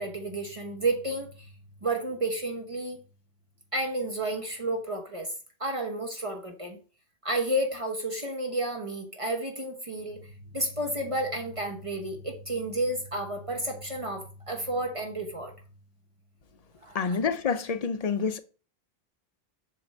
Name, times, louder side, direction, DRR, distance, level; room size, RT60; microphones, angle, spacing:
voice 1, 0.0-1.5 1.8-3.0 3.7-5.3 5.6-6.8 7.2-10.2 10.5-15.5 16.8-17.2, right 1 dB, 35° right, 1.0 m, -31 dB
voice 2, 16.9-18.4, left 5 dB, 50° left, 0.5 m, -27 dB
7.5 x 2.6 x 5.3 m
omnidirectional pair, 1.1 m